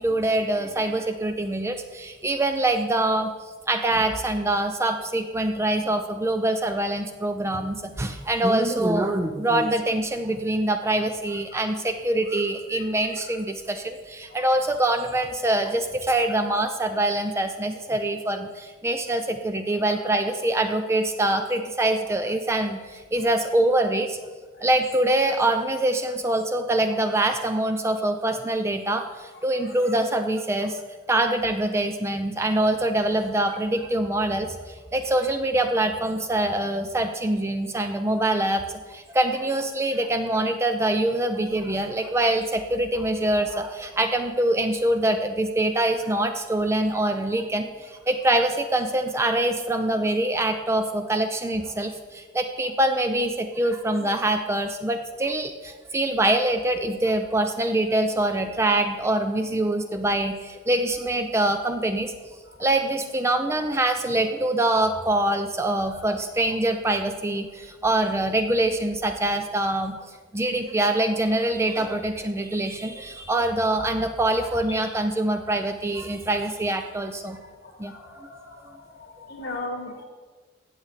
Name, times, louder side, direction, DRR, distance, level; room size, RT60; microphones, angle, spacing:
voice 1, 0.0-3.3 3.7-24.2 24.6-30.8 31.1-38.6 38.9-62.1 62.6-77.4 77.8-77.9 79.5-79.6, right 1 dB, 15° right, 7 dB, 0.4 m, -24 dB
voice 2, 77.6-78.4 78.7-80.0, left 2 dB, 55° left, 2 dB, 1.6 m, -37 dB
15.5 x 8.0 x 3.2 m, 1.4 s
head